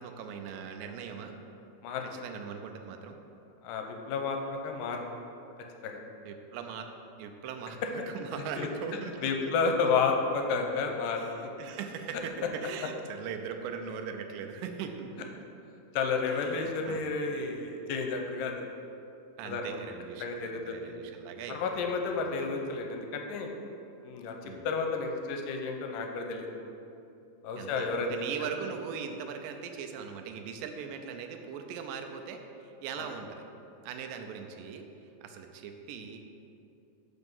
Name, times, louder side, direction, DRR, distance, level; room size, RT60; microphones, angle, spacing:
voice 1, 0.0-1.4 2.2-3.2 6.3-6.9 7.2-9.7 11.2-15.3 16.3-17.1 19.4-22.3 24.4-24.7 27.6-33.4 33.8-34.9 35.2-36.3, right 6 dB, 85° right, 5 dB, 2.3 m, -40 dB
voice 2, 3.6-5.2 5.8-6.0 8.6-8.7 9.2-11.5 15.9-18.5 19.4-19.8 20.2-20.9 21.5-23.5 24.0-26.5 27.4-28.1 28.4-28.5 33.0-33.1, left 4 dB, 85° left, 3 dB, 2.2 m, -31 dB
5.9 x 5.4 x 5.4 m, 2.8 s
omnidirectional pair, 3.9 m